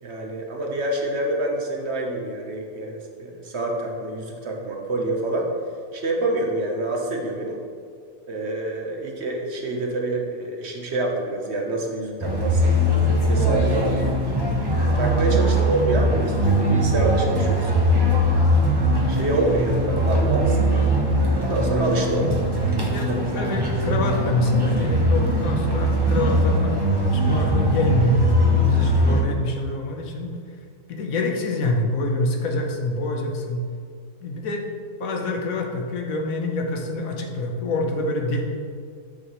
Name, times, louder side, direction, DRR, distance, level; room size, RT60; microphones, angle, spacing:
voice 1, 0.0-5.5 5.9-7.6 8.3-12.8 13.3-14.0 14.8-18.4 19.1-20.9 21.3-22.4 22.6-23.5 23.8-23.9 35.1-35.5, right 2 dB, 55° right, 1 dB, 1.2 m, -27 dB
sound 1, 12.2-29.2, equal, 20° right, 1.0 m, -21 dB
voice 2, 23.3-30.3 30.9-33.6 34.2-34.6 35.0-38.4, left 2 dB, 80° left, 2 dB, 1.4 m, -26 dB
9.0 x 6.5 x 3.1 m, 2.2 s
omnidirectional pair, 1.5 m